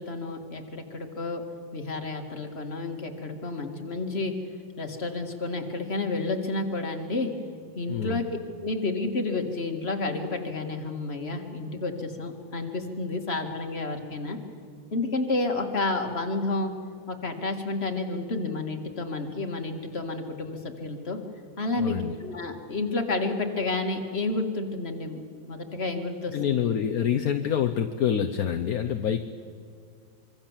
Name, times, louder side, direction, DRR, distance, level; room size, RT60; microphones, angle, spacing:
voice 1, 0.0-1.4 1.7-4.3 4.8-7.3 7.8-8.3 8.6-14.4 14.9-16.7 17.1-21.2 21.6-25.2 25.5-26.6, left 3 dB, 30° left, 4 dB, 2.2 m, -30 dB
voice 2, 7.9-8.2 21.8-22.2 26.3-29.2, left 8 dB, 55° left, 5 dB, 1.1 m, -26 dB
25.5 x 25.0 x 7.4 m, 2.1 s
omnidirectional pair, 2.2 m